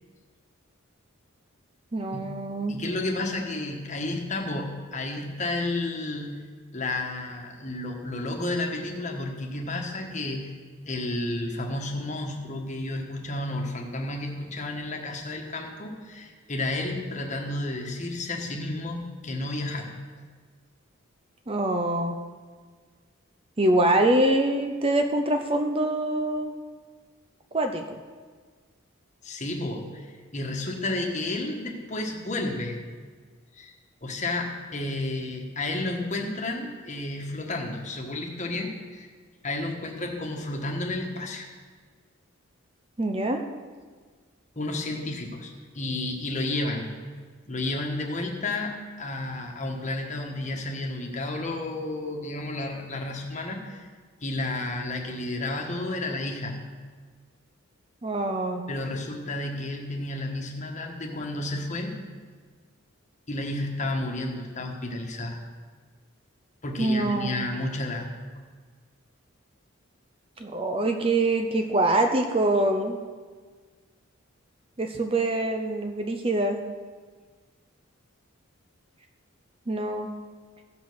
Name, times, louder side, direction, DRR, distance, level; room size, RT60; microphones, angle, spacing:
voice 1, 1.9-2.8 21.5-22.2 23.6-26.5 27.5-28.0 43.0-43.4 58.0-58.7 66.8-67.5 70.4-73.0 74.8-76.6 79.7-80.1, right 1 dB, 25° right, 5 dB, 0.6 m, -24 dB
voice 2, 2.7-6.4 6.7-10.5 10.9-20.0 29.2-32.8 33.5-33.7 34.0-39.1 39.4-41.5 44.5-46.9 47.5-53.9 54.2-56.6 58.7-61.9 63.3-65.4 66.6-68.1, left 2 dB, 35° left, 2 dB, 1.4 m, -31 dB
15.5 x 5.3 x 6.2 m, 1.5 s
head